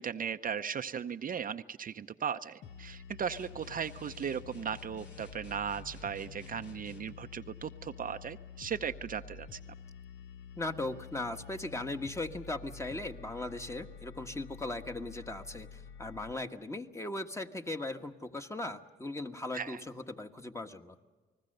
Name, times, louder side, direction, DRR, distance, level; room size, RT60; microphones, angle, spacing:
voice 1, 0.0-9.6 19.5-19.8, right 7 dB, 45° right, 9 dB, 0.7 m, -37 dB
sound 1, 2.6-16.3, left 6 dB, 80° left, 1.1 m, -49 dB
sound 2, 3.4-7.2, left 3 dB, 60° left, 3.7 m, -55 dB
voice 2, 10.6-21.0, left 2 dB, 15° left, 6 dB, 1.4 m, -38 dB
29.0 x 20.0 x 6.7 m, 1.4 s
cardioid pair, 90°, 20 cm